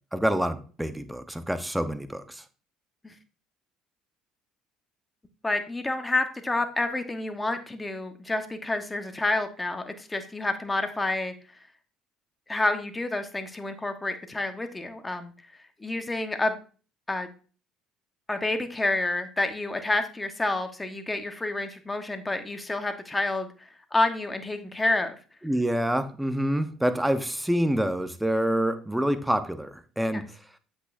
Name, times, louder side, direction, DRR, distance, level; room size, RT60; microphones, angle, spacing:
voice 1, 0.1-2.4 25.4-30.2, equal, 5° right, 10 dB, 0.9 m, -27 dB
voice 2, 5.4-11.3 12.5-15.3 15.8-16.6 17.1-17.3 18.3-25.2 30.1-30.2, left 2 dB, 15° left, 7 dB, 1.2 m, -29 dB
7.9 x 6.2 x 2.6 m, 0.38 s
hypercardioid pair, 65°, 0 cm